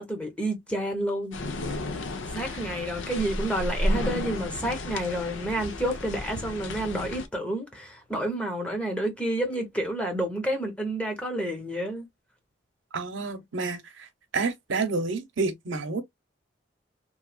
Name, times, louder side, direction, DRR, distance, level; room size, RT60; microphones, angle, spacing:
voice 1, 0.0-1.4 2.3-12.1, right 1 dB, 5° left, 0.8 m, -30 dB
sound 1, 1.3-7.3, left 1 dB, 90° left, 0.6 m, -32 dB
voice 2, 12.9-14.1 14.3-16.0, right 3 dB, 90° right, 0.8 m, -29 dB
3.1 x 2.3 x 2.3 m
head